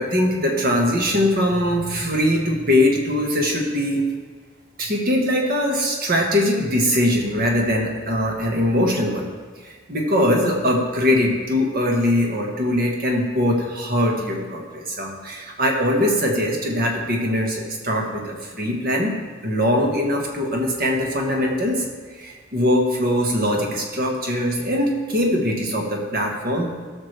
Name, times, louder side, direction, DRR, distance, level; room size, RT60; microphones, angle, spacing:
voice 1, 0.0-4.0 4.8-9.3 9.6-19.1 19.4-21.9 22.1-26.7, left 1 dB, 45° right, 0 dB, 1.5 m, -21 dB
16.5 x 6.4 x 3.3 m, 1.5 s
head